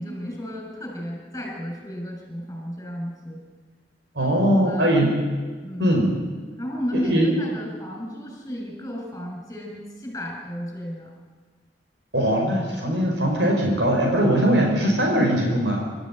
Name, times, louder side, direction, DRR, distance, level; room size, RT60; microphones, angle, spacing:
voice 1, 0.0-3.4 4.2-5.2 5.6-5.9 6.6-11.1, equal, 15° left, 0 dB, 7.1 m, -33 dB
voice 2, 4.2-5.1 5.8-6.1 6.9-7.3 12.1-15.9, right 1 dB, 80° right, 0 dB, 5.2 m, -20 dB
26.5 x 13.5 x 9.2 m, 1.4 s
head